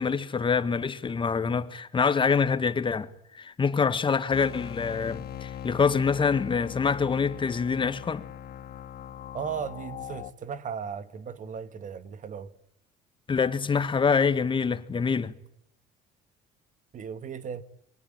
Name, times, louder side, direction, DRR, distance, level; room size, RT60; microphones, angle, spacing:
voice 1, 0.0-3.1 3.3-8.3 13.3-15.3, left 5 dB, 30° left, 1.9 m, -25 dB
sound 1, 4.3-10.3, left 10 dB, 65° left, 2.0 m, -40 dB
voice 2, 9.3-12.5 16.9-17.6, right 7 dB, 50° right, 2.0 m, -36 dB
27.5 x 24.0 x 8.9 m
cardioid pair, 110°, 17 cm